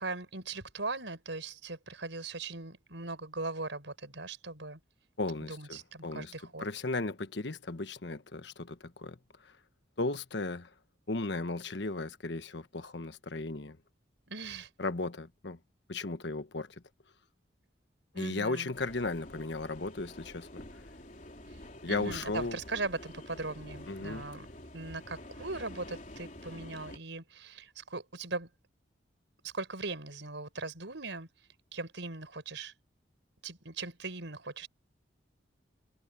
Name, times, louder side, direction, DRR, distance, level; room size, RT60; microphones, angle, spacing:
voice 1, 0.0-4.8 5.4-6.6 14.3-14.7 18.1-18.7 21.5-21.6 21.8-24.5 24.7-28.5 29.4-31.3 31.7-32.7 33.4-34.7, right 3 dB, 80° right, 5.1 m, -39 dB
voice 2, 5.2-6.3 6.6-9.2 9.4-9.5 10.0-10.7 11.1-13.8 14.8-15.6 15.9-16.8 18.1-20.6 21.8-22.6 23.9-24.2, left 3 dB, 70° left, 1.2 m, -36 dB
sound 1, 18.7-27.0, left 1 dB, 45° left, 4.1 m, -48 dB
head